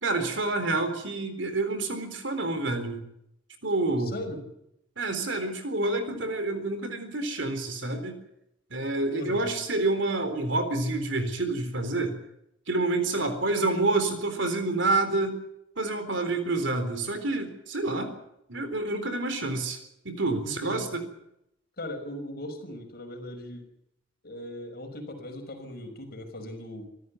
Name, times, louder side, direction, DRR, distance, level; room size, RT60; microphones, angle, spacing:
voice 1, 0.0-3.0 3.6-4.2 5.0-8.2 8.7-12.2 12.7-15.4 15.8-18.2 18.5-19.8 20.0-21.0, right 2 dB, 70° right, 9 dB, 4.0 m, -28 dB
voice 2, 4.0-4.4 9.1-9.5 20.4-20.9 21.8-23.7 24.2-26.9, left 1 dB, 55° left, 4 dB, 5.7 m, -39 dB
25.5 x 13.5 x 9.6 m, 0.79 s
head